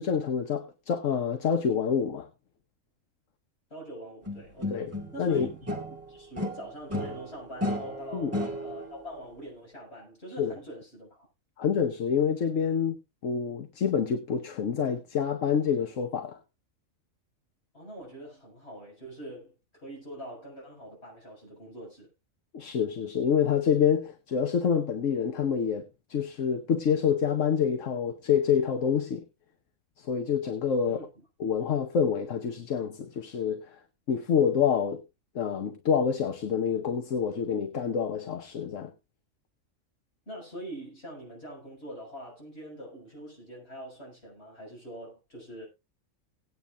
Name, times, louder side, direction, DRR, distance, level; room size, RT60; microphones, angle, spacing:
voice 1, 0.0-2.3 4.7-4.9 5.2-5.5 8.1-8.3 10.4-10.5 11.6-13.0 13.2-16.4 22.5-29.2 30.0-31.0 31.4-33.8 34.1-35.0 35.3-38.9, left 7 dB, 65° left, 1.3 m, -27 dB
voice 2, 3.7-11.2 17.7-22.1 30.8-31.2 40.3-45.7, right 1 dB, 50° left, 7.2 m, -44 dB
sound 1, 4.3-6.0 6.4-8.9, left 1 dB, 10° right, 2.0 m, -34 dB
18.0 x 9.4 x 2.5 m
omnidirectional pair, 1.4 m